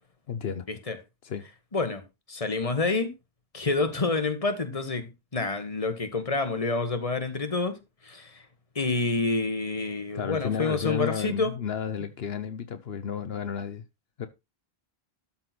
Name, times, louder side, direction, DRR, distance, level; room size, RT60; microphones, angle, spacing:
voice 1, 0.3-0.7 1.2-1.5 10.1-13.8 14.2-14.3, left 7 dB, 75° left, 1.1 m, -32 dB
voice 2, 1.7-2.0 2.3-3.1 3.5-7.8 8.0-8.4 8.7-11.5, left 3 dB, 35° left, 1.7 m, -28 dB
13.0 x 4.4 x 6.0 m
omnidirectional pair, 1.0 m